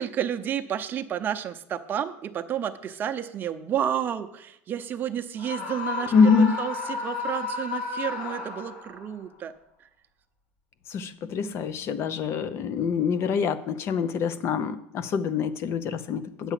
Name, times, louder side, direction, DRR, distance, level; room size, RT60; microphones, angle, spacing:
voice 1, 0.0-9.5 9.8-9.9, right 9 dB, 35° right, 7 dB, 0.7 m, -31 dB
Screaming, 5.4-9.1, left 4 dB, 75° left, 4.8 m, -33 dB
voice 2, 6.1-6.5 10.9-16.5, left 5 dB, 45° left, 14 dB, 0.7 m, -25 dB
8.9 x 7.0 x 5.8 m, 0.78 s
cardioid pair, 135°, 6 cm